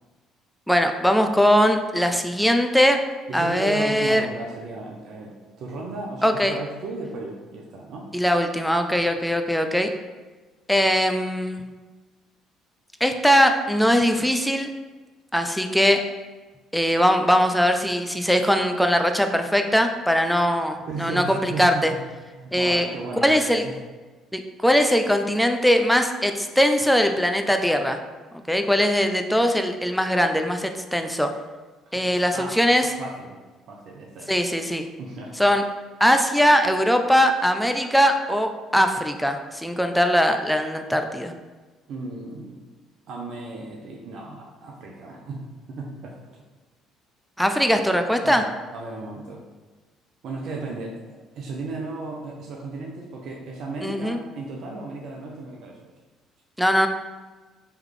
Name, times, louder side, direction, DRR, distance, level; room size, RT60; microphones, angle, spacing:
voice 1, 0.7-3.0 3.3-4.3 6.2-6.6 8.1-9.9 10.7-11.6 13.0-14.7 15.3-16.0 16.7-21.9 22.5-22.9 23.2-23.7 24.3-28.0 28.5-31.3 31.9-32.9 34.3-34.9 35.4-35.6 36.0-41.3 47.4-48.4 53.8-54.2 56.6-56.9, equal, ahead, 6 dB, 0.4 m, -21 dB
voice 2, 3.3-8.1 20.9-22.0 22.3-23.8 31.9-32.6 33.0-33.4 33.7-34.4 35.0-35.3 41.9-42.6 43.1-46.1 48.2-48.4 48.7-49.4 50.2-51.1 51.3-55.8, right 3 dB, 65° right, -1 dB, 0.5 m, -35 dB
3.2 x 3.1 x 3.7 m, 1.3 s
hypercardioid pair, 60°, 0 cm